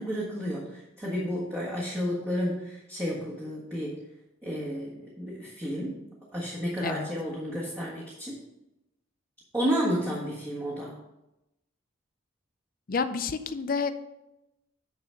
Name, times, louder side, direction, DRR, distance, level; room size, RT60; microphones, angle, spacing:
voice 1, 0.0-3.9 4.4-6.0 6.3-8.4 9.5-11.0, equal, 10° right, -7 dB, 1.5 m, -31 dB
voice 2, 12.9-13.9, left 5 dB, 45° left, 10 dB, 0.5 m, -29 dB
9.6 x 4.0 x 5.7 m, 0.93 s
head